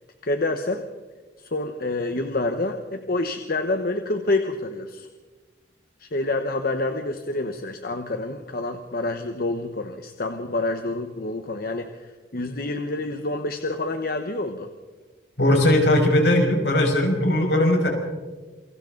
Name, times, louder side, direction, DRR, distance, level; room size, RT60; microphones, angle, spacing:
voice 1, 0.2-0.8 1.4-5.1 6.0-14.7, left 2 dB, 55° left, 6 dB, 1.2 m, -27 dB
voice 2, 15.4-17.9, left 1 dB, 75° left, 1 dB, 6.0 m, -19 dB
28.0 x 24.0 x 4.0 m, 1.3 s
head